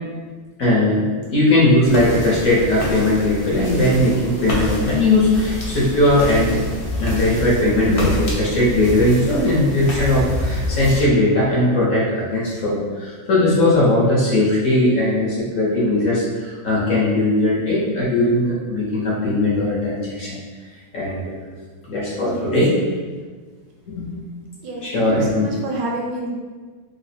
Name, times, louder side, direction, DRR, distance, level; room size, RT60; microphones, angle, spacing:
voice 1, 0.6-6.6 7.0-20.4 20.9-21.4 21.9-22.7 23.9-24.1 24.8-25.5, left 1 dB, 60° left, -6 dB, 1.0 m, -18 dB
sound 1, 1.8-11.0, left 1 dB, 85° left, 0.5 m, -27 dB
voice 2, 22.2-22.5 24.6-26.3, right 2 dB, 85° right, -2 dB, 1.4 m, -29 dB
3.2 x 2.0 x 4.0 m, 1.5 s
omnidirectional pair, 1.9 m